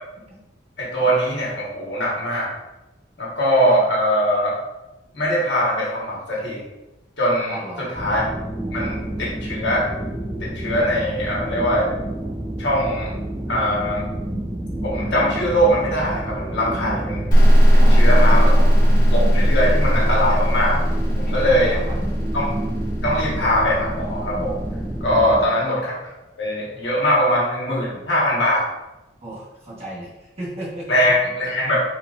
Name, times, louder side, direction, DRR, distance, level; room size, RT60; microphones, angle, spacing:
voice 1, 0.8-2.5 3.2-4.6 5.1-6.6 7.2-8.2 8.7-9.9 10.4-11.9 12.6-13.1 13.5-14.0 14.7-17.3 17.7-18.5 19.1-20.8 21.2-21.8 22.3-22.5 23.0-24.5 25.0-26.1 26.4-28.6 30.9-31.8, equal, 70° left, -5 dB, 1.4 m, -21 dB
voice 2, 7.5-8.0 17.8-18.8 21.2-22.1 25.2-25.7 29.2-31.0, right 1 dB, 35° right, -6 dB, 1.2 m, -35 dB
sound 1, 7.9-25.5, right 1 dB, 10° right, 0.4 m, -29 dB
sound 2, 17.3-24.8, equal, 45° left, 1.2 m, -17 dB
4.1 x 4.0 x 2.4 m, 1.0 s
head